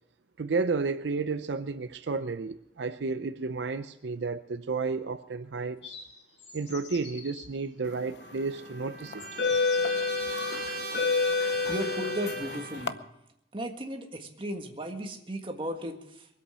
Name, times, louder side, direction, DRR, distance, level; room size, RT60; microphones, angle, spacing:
voice 1, 0.4-6.0 6.5-9.2, right 4 dB, 75° right, 0.6 m, -32 dB
sound 1, 5.8-7.5 8.5-8.6 9.2-10.7, left 4 dB, 85° left, 5.2 m, -46 dB
sound 2, 8.1-8.4 9.1-12.9, left 4 dB, 60° left, 0.7 m, -29 dB
Trumpet, 8.2-13.1, right 5 dB, 50° right, 1.3 m, -39 dB
voice 2, 11.7-13.0 13.5-16.3, equal, 30° right, 1.6 m, -35 dB
23.0 x 8.4 x 6.3 m
head